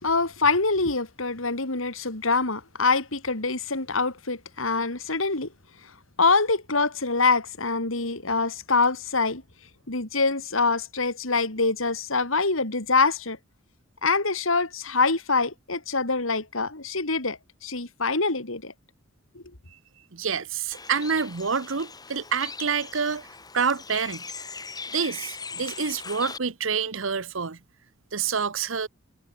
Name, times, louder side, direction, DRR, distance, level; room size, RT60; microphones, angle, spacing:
voice 1, 0.0-5.5 6.2-9.4 9.9-13.4 14.0-18.7, left 3 dB, 85° left, 3.8 m, -25 dB
voice 2, 20.1-23.3 23.5-24.2 24.9-27.6 28.1-28.9, right 6 dB, 70° right, 1.0 m, -27 dB
Bird, 20.7-26.4, left 5 dB, 20° left, 2.2 m, -39 dB
head